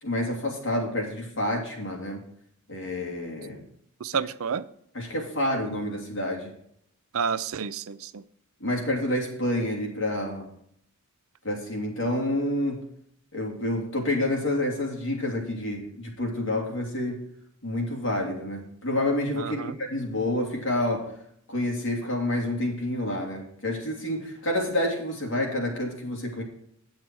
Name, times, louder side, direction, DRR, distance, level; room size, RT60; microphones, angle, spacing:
voice 1, 0.0-2.2 2.7-3.6 4.9-6.5 8.6-10.5 11.4-12.8 13.3-17.2 17.6-21.1 21.5-26.4, left 1 dB, 60° left, 2.8 m, -28 dB
voice 2, 4.0-4.7 7.1-8.2 19.3-19.8, right 6 dB, 70° right, 0.5 m, -30 dB
9.0 x 7.4 x 4.6 m
head